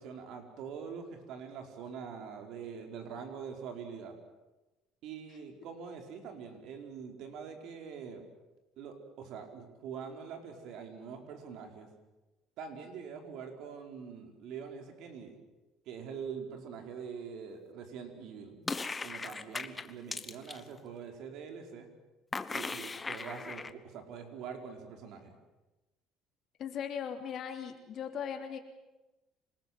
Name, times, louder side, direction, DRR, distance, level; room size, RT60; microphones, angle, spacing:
voice 1, 0.0-4.2 5.0-8.2 8.8-11.9 12.6-15.4 15.9-18.6 19.0-21.9 22.5-25.4, right 6 dB, 65° right, 4 dB, 4.5 m, -44 dB
sound 1, 18.7-20.6 22.3-23.7, left 4 dB, 20° left, 1.1 m, -38 dB
voice 2, 26.6-28.6, left 8 dB, 50° left, 4 dB, 3.0 m, -38 dB
27.0 x 20.0 x 7.8 m, 1.1 s
cardioid pair, 130°, 0 cm